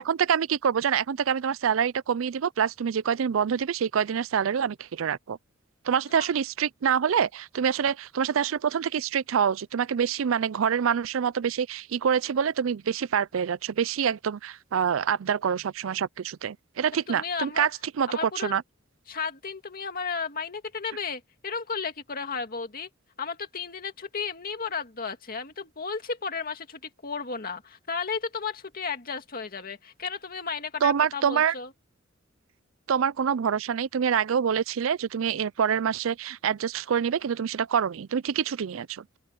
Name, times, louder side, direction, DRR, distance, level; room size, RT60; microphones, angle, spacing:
voice 1, 0.0-5.4 5.8-17.7 18.0-18.6 30.8-31.5 32.9-39.2, right 7 dB, 85° right, 0.4 m, -26 dB
voice 2, 16.9-17.7 18.1-18.6 19.1-22.9 23.2-31.7, left 5 dB, 45° left, 2.2 m, -34 dB
open air
head